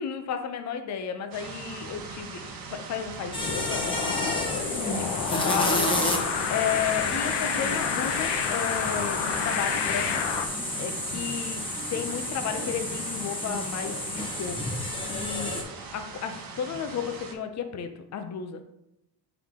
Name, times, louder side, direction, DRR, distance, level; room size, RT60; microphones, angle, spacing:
voice 1, 0.0-10.2 10.8-18.6, left 7 dB, 40° left, 8 dB, 0.6 m, -33 dB
sound 1, 1.3-17.3, right 4 dB, 50° right, 1.1 m, -41 dB
sound 2, 3.3-15.6, left 1 dB, 10° left, 1.0 m, -31 dB
sound 3, 3.4-10.5, left 7 dB, 75° left, 0.8 m, -30 dB
5.6 x 4.5 x 3.7 m, 0.82 s
cardioid pair, 130°, 42 cm